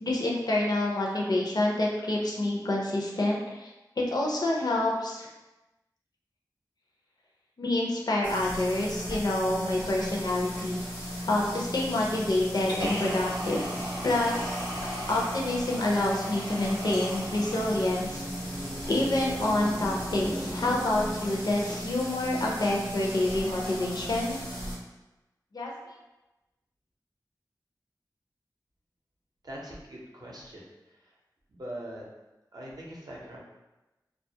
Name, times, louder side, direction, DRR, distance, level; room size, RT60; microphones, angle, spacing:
voice 1, 0.0-3.7 4.0-5.3 7.6-10.8 11.3-13.7 14.0-14.6 15.1-18.2 18.9-24.4 25.5-25.7, left 1 dB, 65° left, -2 dB, 0.5 m, -27 dB
sound 1, 8.2-24.7, equal, 85° left, 1.0 m, -36 dB
sound 2, 17.1-21.5, equal, ahead, 0.4 m, -40 dB
voice 2, 29.4-30.6 31.5-32.0 32.5-33.4, right 1 dB, 65° right, -4 dB, 0.6 m, -41 dB
2.3 x 2.0 x 2.7 m, 1.0 s
wide cardioid pair, 60°, 7 cm